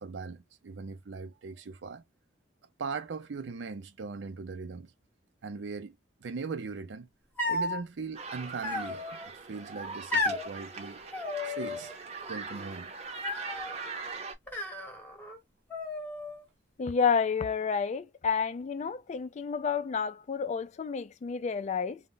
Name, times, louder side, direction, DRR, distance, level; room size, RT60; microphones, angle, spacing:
voice 1, 0.0-2.0 2.8-4.9 5.4-6.0 6.2-7.1 7.5-11.0 11.4-11.9 12.3-12.9, right 4 dB, 75° right, 0.5 m, -39 dB
sound 1, 7.4-7.8 8.6-9.3 10.1-10.5 11.1-11.9 12.2-12.8 13.2-13.8 14.5-15.4 15.7-16.4, left 2 dB, 10° left, 0.8 m, -34 dB
sound 2, 8.1-14.3, right 4 dB, 35° right, 0.6 m, -41 dB
voice 2, 16.8-22.0, left 6 dB, 40° left, 0.3 m, -30 dB
2.1 x 2.1 x 3.8 m
head